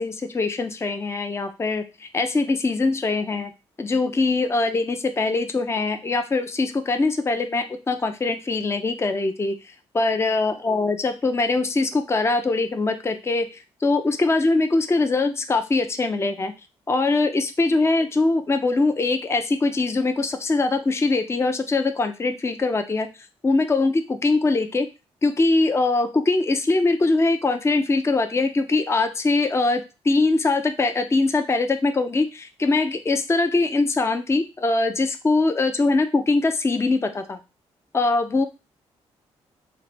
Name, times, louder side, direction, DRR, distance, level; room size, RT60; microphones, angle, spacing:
voice 1, 0.0-3.5 3.8-9.5 9.9-16.5 16.9-23.1 23.4-24.9 25.2-37.4 37.9-38.5, left 3 dB, 20° left, 7 dB, 0.5 m, -22 dB
3.1 x 2.2 x 4.1 m, 0.28 s
supercardioid pair, 65°, 12 cm